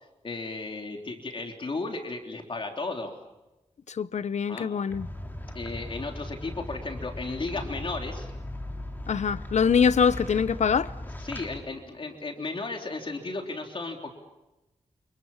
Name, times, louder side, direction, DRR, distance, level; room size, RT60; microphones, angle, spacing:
voice 1, 0.2-3.1 4.5-4.7 5.5-8.3 11.2-14.1, left 3 dB, 50° left, 3.5 m, -34 dB
voice 2, 4.0-5.1 9.1-10.9, left 6 dB, 85° left, 0.9 m, -24 dB
sound 1, 4.9-11.6, left 1 dB, 15° left, 3.7 m, -38 dB
29.5 x 27.0 x 7.3 m
wide cardioid pair, 125°, 12 cm